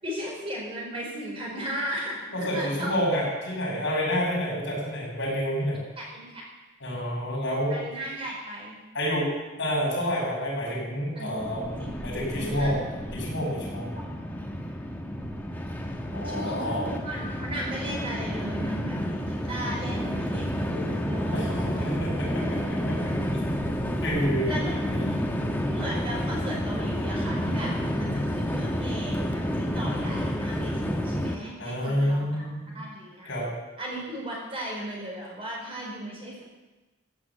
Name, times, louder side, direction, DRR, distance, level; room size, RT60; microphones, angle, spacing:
voice 1, 0.0-2.9 5.2-5.3 6.0-6.4 7.7-8.8 11.1-12.0 12.3-12.7 13.9-14.2 16.2-22.0 22.3-22.7 24.5-24.8 25.6-33.3 33.8-36.4, equal, 25° right, -3 dB, 4.5 m, -36 dB
voice 2, 2.3-5.8 6.8-7.8 8.9-9.3 9.6-12.8 13.1-13.9 16.1-16.9 21.3-23.0 23.6-23.7 24.0-24.6 24.9-25.0 31.6-32.8 33.2-33.5, equal, 60° left, -4 dB, 6.8 m, -29 dB
Train, 11.4-31.3, equal, 10° left, 1.2 m, -30 dB
15.5 x 8.8 x 8.3 m, 1.1 s
head